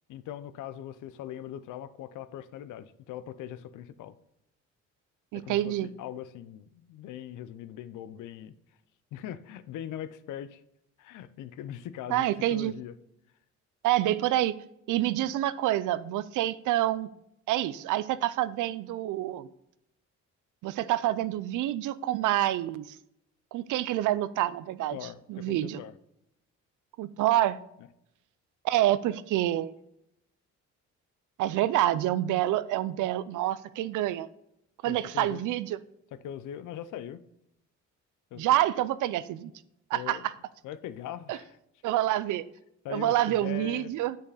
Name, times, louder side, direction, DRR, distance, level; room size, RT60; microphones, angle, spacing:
voice 1, 0.1-4.2 5.3-8.5 9.1-10.6 11.0-12.9 24.9-25.9 27.8-27.9 34.8-35.4 36.1-37.2 38.3-38.4 39.9-40.3 40.6-41.6 42.8-43.9, left 10 dB, 80° left, 14 dB, 0.6 m, -41 dB
voice 2, 5.3-5.9 12.1-12.7 13.8-14.6 14.9-17.1 17.5-19.5 20.6-23.0 23.5-25.0 25.3-25.8 27.0-27.6 28.6-29.7 31.4-34.3 34.8-35.8 38.4-39.5 39.9-40.3 41.3-41.4 41.8-42.4 42.9-44.2, right 14 dB, 80° right, 16 dB, 0.5 m, -27 dB
8.2 x 6.5 x 4.0 m, 0.80 s
cardioid pair, 90°, 30 cm